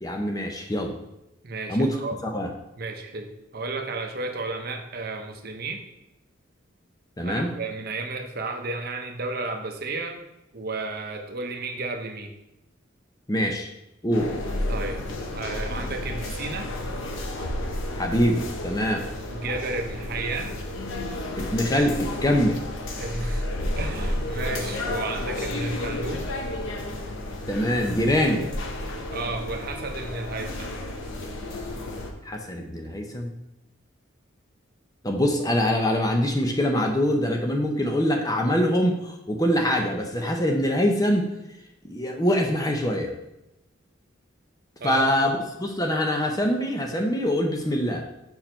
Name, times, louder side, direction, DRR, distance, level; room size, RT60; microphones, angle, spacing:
voice 1, 0.0-0.9 1.7-1.9 2.3-2.5 7.2-7.5 13.3-13.7 14.0-14.3 18.0-19.1 21.4-22.6 27.5-28.5 32.2-33.3 35.0-41.3 41.8-43.1 44.8-48.1, equal, 20° left, 3 dB, 0.7 m, -24 dB
voice 2, 1.4-2.2 2.8-5.8 7.2-10.2 10.5-12.3 14.7-16.7 19.3-20.6 23.0-23.5 23.7-26.3 28.2-28.3 29.1-30.8 44.8-45.3, right 3 dB, 50° right, 4 dB, 0.8 m, -33 dB
sound 1, 14.1-32.1, left 1 dB, 70° left, 0.8 m, -32 dB
5.5 x 4.7 x 4.4 m, 0.90 s
head